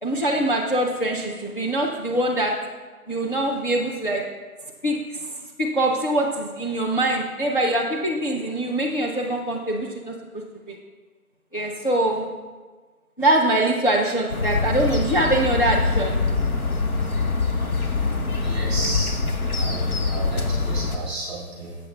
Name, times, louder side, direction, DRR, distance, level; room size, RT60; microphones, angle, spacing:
voice 1, 0.0-2.5 3.1-4.2 4.8-5.3 5.6-10.8 11.5-12.2 13.2-16.2, right 1 dB, 35° left, -3 dB, 0.6 m, -23 dB
sound 1, 14.3-21.0, left 3 dB, 75° left, 1.2 m, -24 dB
voice 2, 18.4-19.1 19.5-21.8, right 2 dB, 10° right, -5 dB, 1.7 m, -32 dB
13.5 x 7.5 x 2.2 m, 1.4 s
hypercardioid pair, 175°, 44 cm